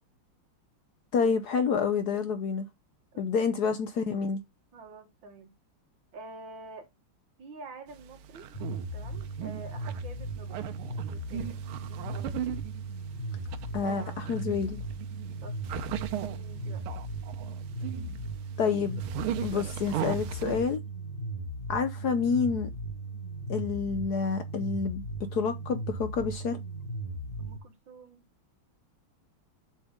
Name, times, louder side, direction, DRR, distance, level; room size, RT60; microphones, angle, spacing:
voice 1, 1.1-2.7 3.2-4.4 13.7-14.8 18.6-19.0 19.4-20.8 21.7-22.7 23.5-25.0 25.3-26.6, left 5 dB, 60° left, 1.2 m, -28 dB
voice 2, 3.1-3.6 4.7-5.5 6.1-6.9 7.4-8.5 8.9-10.6 11.1-12.4 15.4-15.6 16.2-16.8 27.4-28.2, right 3 dB, 65° right, 2.3 m, -48 dB
sound 1, 8.0-20.7, right 11 dB, 85° right, 1.6 m, -39 dB
sound 2, 8.5-27.6, right 2 dB, 25° left, 1.1 m, -37 dB
7.6 x 6.0 x 3.6 m
omnidirectional pair, 2.3 m